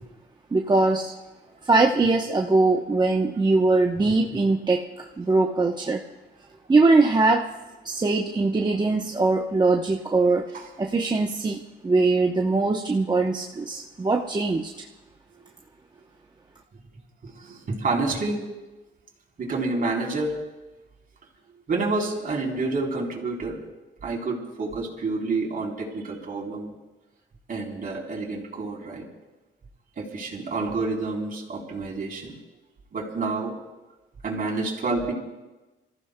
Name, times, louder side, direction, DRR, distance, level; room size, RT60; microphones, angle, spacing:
voice 1, 0.5-1.1 1.7-4.8 5.2-6.0 6.7-7.4 7.8-10.4 10.8-14.7, right 3 dB, 20° right, 1 dB, 0.8 m, -21 dB
voice 2, 17.2-18.4 19.4-20.4 21.7-23.6 24.0-26.7 27.5-29.1 30.0-32.4 32.9-33.5 34.2-35.1, right 3 dB, 45° right, -1 dB, 3.6 m, -28 dB
30.0 x 14.5 x 2.2 m, 1.1 s
cardioid pair, 90°, 20 cm